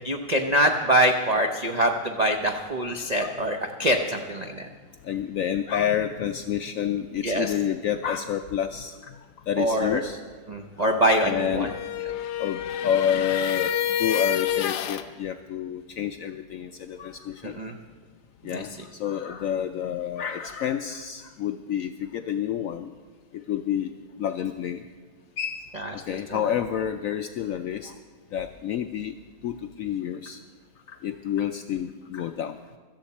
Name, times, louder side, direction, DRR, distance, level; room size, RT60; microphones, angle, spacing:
voice 1, 0.0-4.7 7.2-7.5 9.6-10.0 10.5-11.7 17.6-17.7 18.5-18.6 25.8-25.9, right 1 dB, 80° right, 3 dB, 0.3 m, -24 dB
voice 2, 3.0-3.4 5.0-9.1 9.5-10.2 10.8-11.7 12.4-13.7 14.0-17.6 18.4-22.9 23.3-23.9 24.2-24.8 25.4-25.7 26.1-27.9 28.3-29.1 29.4-30.4 30.9-32.6, left 9 dB, 90° left, 7 dB, 0.7 m, -29 dB
sound 1, 11.5-15.1, left 9 dB, 70° left, 1.2 m, -28 dB
17.0 x 13.0 x 4.2 m, 1.4 s
omnidirectional pair, 2.0 m